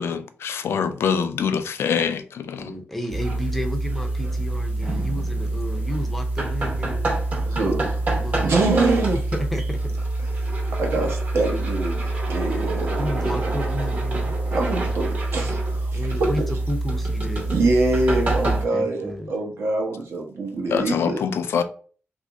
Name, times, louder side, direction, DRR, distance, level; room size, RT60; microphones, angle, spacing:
voice 1, 0.0-2.7 20.7-21.6, left 7 dB, 75° left, 0.3 m, -24 dB
voice 2, 2.5-7.1 8.1-8.5 9.3-10.0 13.0-14.4 15.9-17.6 18.5-19.3, equal, 5° left, 0.5 m, -31 dB
sound 1, 3.1-18.6, right 2 dB, 40° right, 0.8 m, -25 dB
voice 3, 7.5-8.0 8.4-9.2 10.4-12.9 13.2-13.4 14.5-16.3 17.5-21.2, right 2 dB, 75° right, 0.8 m, -24 dB
3.0 x 2.5 x 3.4 m
wide cardioid pair, 170°, 4 cm